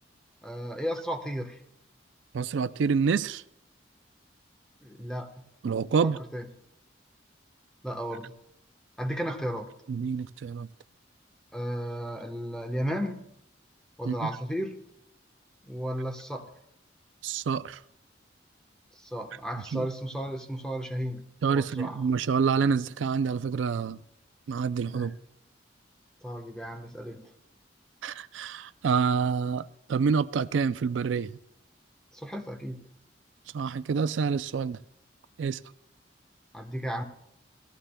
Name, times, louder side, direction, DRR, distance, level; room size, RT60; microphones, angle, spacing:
voice 1, 0.4-1.6 4.8-5.5 6.0-6.4 7.8-8.3 9.0-9.7 11.5-13.2 14.0-14.8 15.6-16.5 19.0-22.1 24.9-25.1 26.2-27.3 32.1-32.8 36.5-37.0, equal, 5° left, 1.0 m, -34 dB
voice 2, 2.3-3.4 5.6-6.2 9.9-10.7 14.1-14.2 17.2-17.8 19.7-19.9 21.4-24.0 24.5-25.1 28.0-31.3 33.5-34.8 35.4-35.6, right 5 dB, 85° right, 0.4 m, -27 dB
19.0 x 14.5 x 2.2 m
head